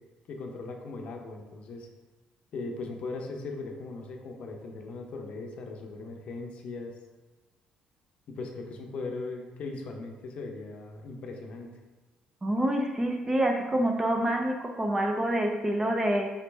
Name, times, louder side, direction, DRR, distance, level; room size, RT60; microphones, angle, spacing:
voice 1, 0.3-1.9 2.5-6.9 8.3-11.7, left 3 dB, 50° left, 2 dB, 0.6 m, -39 dB
voice 2, 12.4-16.3, right 1 dB, 15° right, 3 dB, 0.4 m, -27 dB
5.1 x 3.1 x 3.3 m, 1.2 s
cardioid pair, 135°, 3 cm